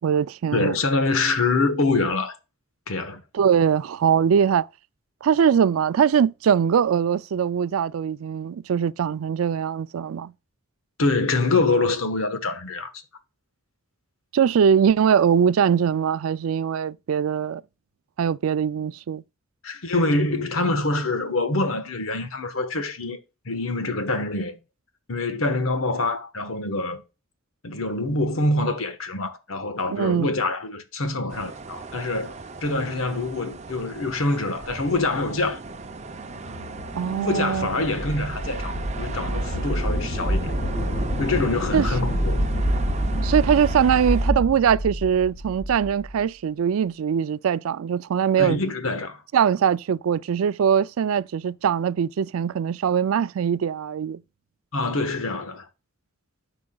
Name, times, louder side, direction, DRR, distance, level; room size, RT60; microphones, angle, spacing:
voice 1, 0.0-0.7 3.3-4.7 5.2-10.3 14.3-17.6 18.2-19.2 29.9-30.3 36.9-37.7 41.7-41.9 43.2-48.6 49.3-54.2, right 7 dB, 85° right, 0.4 m, -22 dB
voice 2, 0.5-2.4 2.9-3.2 11.0-12.9 19.6-23.2 23.4-24.6 25.1-27.0 27.6-32.3 32.6-35.6 37.0-40.5 41.2-42.4 48.4-49.2 54.7-55.6, left 2 dB, 80° left, 1.3 m, -25 dB
sound 1, 31.3-44.3, right 4 dB, 30° right, 0.6 m, -38 dB
sound 2, 36.2-46.2, equal, 40° left, 1.9 m, -27 dB
12.5 x 4.9 x 2.3 m
head